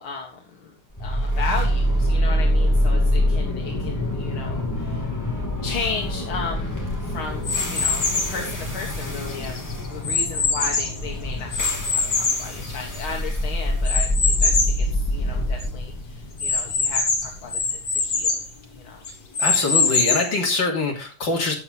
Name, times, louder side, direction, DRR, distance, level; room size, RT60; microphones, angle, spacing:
voice 1, 0.0-5.1 5.6-18.4 18.7-19.0 20.7-20.8, left 5 dB, 85° left, 0 dB, 2.4 m, -35 dB
sound 1, 1.0-19.1, equal, 10° left, 2.8 m, -25 dB
sound 2, 7.4-8.4 9.0-11.0 11.5-13.2 13.8-14.8 15.3-15.4 15.6-15.7 16.4-18.5 19.0-20.4, left 4 dB, 45° left, 2.3 m, -23 dB
voice 2, 19.4-21.5, left 3 dB, 65° left, -1 dB, 3.7 m, -23 dB
12.5 x 8.4 x 4.1 m, 0.35 s
omnidirectional pair, 2.2 m